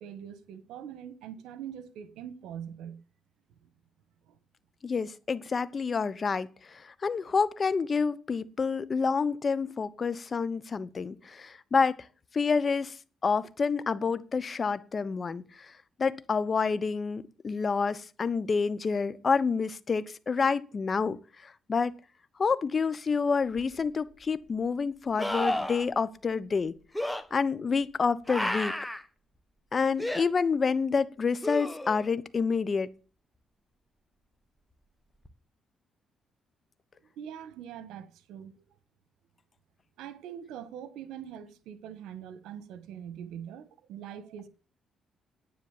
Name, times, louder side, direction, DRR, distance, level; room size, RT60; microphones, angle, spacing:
voice 1, 0.0-3.0 4.3-4.4 37.2-38.6 40.0-44.5, right 9 dB, 90° right, 1.4 m, -43 dB
voice 2, 4.8-12.0 12.3-12.9 13.2-15.7 16.0-21.9 22.4-26.8 27.3-28.7 29.7-32.9, left 5 dB, 40° left, 1.1 m, -28 dB
sound 1, 23.6-23.7 25.2-25.9 26.9-27.2 28.3-29.0 30.0-30.2 31.4-32.1 35.3-35.4, left 1 dB, 5° left, 1.7 m, -31 dB
10.5 x 9.4 x 7.4 m
cardioid pair, 90°, 0 cm